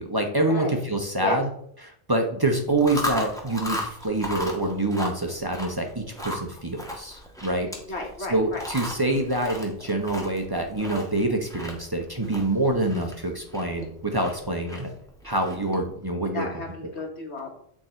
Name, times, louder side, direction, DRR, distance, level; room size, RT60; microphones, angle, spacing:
voice 1, 0.0-1.5 1.8-7.7 8.3-14.9 15.2-16.5 16.8-16.9, right 1 dB, 25° right, 3 dB, 0.9 m, -26 dB
Chewing mastication, 2.7-15.9, left 1 dB, 5° left, 1.3 m, -37 dB
voice 2, 7.9-8.7 9.2-9.3 13.5-13.9 16.3-17.5, left 2 dB, 80° left, 2 dB, 1.9 m, -33 dB
9.2 x 3.7 x 4.4 m, 0.65 s
omnidirectional pair, 1.1 m